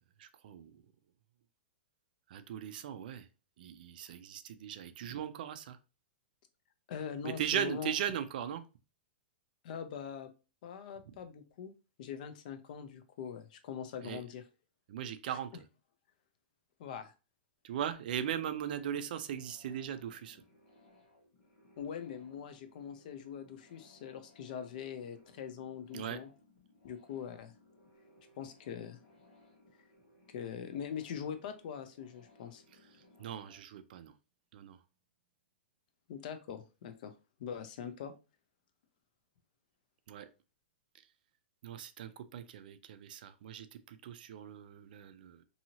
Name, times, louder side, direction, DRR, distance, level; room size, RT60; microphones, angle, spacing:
voice 1, 0.2-0.8 2.3-3.3 3.6-5.8 7.2-8.6 14.0-14.2 14.9-15.6 17.6-20.4 25.9-26.2 33.2-34.1 34.5-34.8 40.1-40.3 41.6-45.4, right 9 dB, 50° right, 11 dB, 0.3 m, -39 dB
voice 2, 6.9-7.9 9.6-10.3 10.6-11.7 12.0-14.4 16.8-17.1 21.8-26.3 26.8-27.5 28.4-29.0 30.3-32.6 36.1-37.1 37.4-38.1, left 8 dB, 45° left, 9 dB, 0.4 m, -42 dB
sound 1, 18.6-33.6, left 1 dB, 65° left, 1.1 m, -64 dB
2.7 x 2.7 x 2.8 m, 0.31 s
hypercardioid pair, 165°, 6 cm